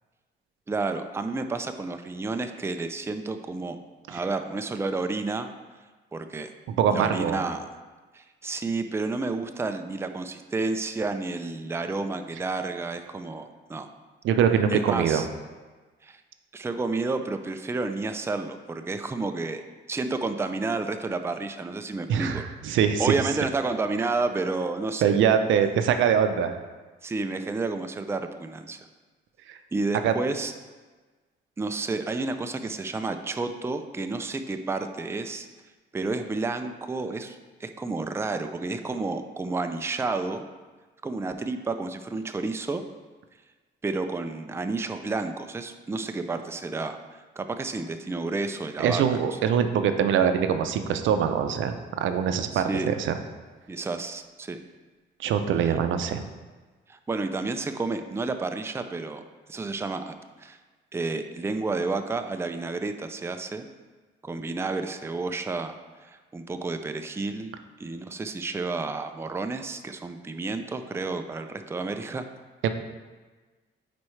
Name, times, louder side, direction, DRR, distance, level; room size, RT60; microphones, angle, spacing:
voice 1, 0.7-3.8 4.1-5.5 6.1-6.5 6.9-7.6 8.1-13.9 14.7-15.3 16.0-16.2 16.5-19.6 19.9-22.4 23.0-25.2 27.0-28.8 29.7-30.5 31.6-35.5 35.9-40.4 41.0-42.8 43.8-47.0 47.4-49.2 52.5-52.9 53.7-54.6 55.6-55.7 56.9-59.2 59.5-60.6 60.9-63.7 64.2-67.5 67.8-72.3, right 3 dB, 15° right, 7 dB, 0.4 m, -30 dB
voice 2, 6.7-7.4 14.2-15.3 22.1-23.2 25.0-26.6 29.5-29.6 30.0-30.1 48.8-53.1 55.2-56.2 72.6-72.7, right 8 dB, 75° right, 8 dB, 0.6 m, -23 dB
9.4 x 4.2 x 3.2 m, 1.3 s
cardioid pair, 90°, 20 cm